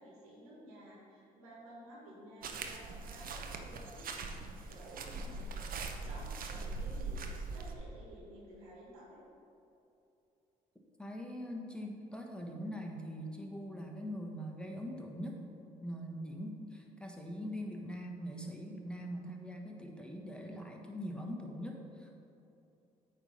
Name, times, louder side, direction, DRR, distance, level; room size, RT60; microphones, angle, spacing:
voice 1, 0.0-7.2 7.5-9.2, right 1 dB, 90° right, -4 dB, 1.6 m, -53 dB
sound 1, 2.4-7.8, right 3 dB, 55° right, 0.8 m, -41 dB
voice 2, 11.0-15.4 15.8-22.2, equal, 5° left, 0 dB, 1.2 m, -42 dB
8.8 x 3.3 x 5.6 m, 2.8 s
hypercardioid pair, 50°, 17 cm